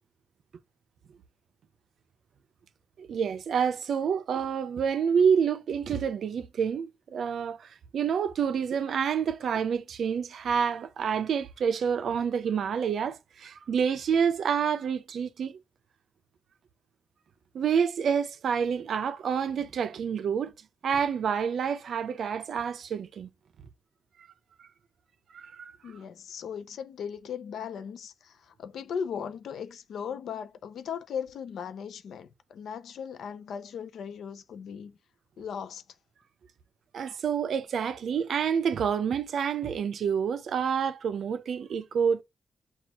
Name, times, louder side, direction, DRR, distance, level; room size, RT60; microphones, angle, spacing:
voice 1, 3.0-15.6 17.5-20.5 20.8-23.3 24.6-24.7 25.3-25.8 36.9-42.2, right 7 dB, 70° right, 0.5 m, -28 dB
voice 2, 25.8-35.0 35.4-35.8, left 7 dB, 85° left, 0.5 m, -38 dB
6.0 x 2.4 x 2.8 m
wide cardioid pair, 135°, 0 cm